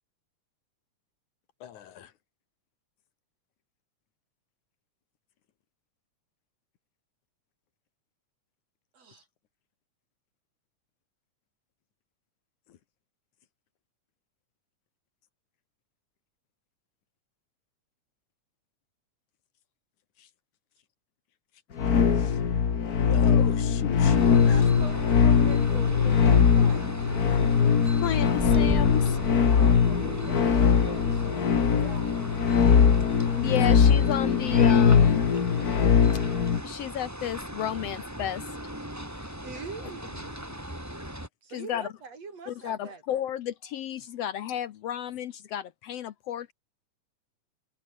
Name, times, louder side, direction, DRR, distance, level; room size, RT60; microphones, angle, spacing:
voice 1, 1.6-2.1 23.1-24.5, left 10 dB, 90° left, 3.2 m, -38 dB
voice 2, 8.9-9.2 24.5-26.9 29.4-32.2 39.4-40.5 41.4-43.0, right 4 dB, 60° right, 5.5 m, -43 dB
sound 1, 21.8-36.6, left 6 dB, 40° left, 1.6 m, -21 dB
sound 2, 24.1-41.3, right 1 dB, 5° right, 4.5 m, -37 dB
voice 3, 27.8-29.2 33.3-35.3 36.6-38.4 39.2-39.4 41.5-41.9 42.5-46.5, left 10 dB, 65° left, 1.8 m, -32 dB
omnidirectional pair, 3.3 m